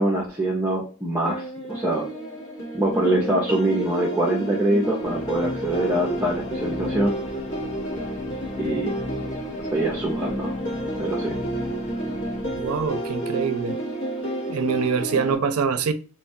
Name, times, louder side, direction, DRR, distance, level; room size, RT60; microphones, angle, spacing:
voice 1, 0.0-2.1 2.7-7.2 8.6-8.9 9.7-10.6 11.0-11.4, right 1 dB, 10° right, 0.6 m, -24 dB
sound 1, 1.2-15.4, right 1 dB, 65° left, 1.2 m, -31 dB
sound 2, 5.0-13.5, left 3 dB, 35° left, 0.3 m, -35 dB
voice 2, 12.6-13.8 14.5-15.9, right 6 dB, 80° right, 0.4 m, -24 dB
3.0 x 2.2 x 2.6 m
head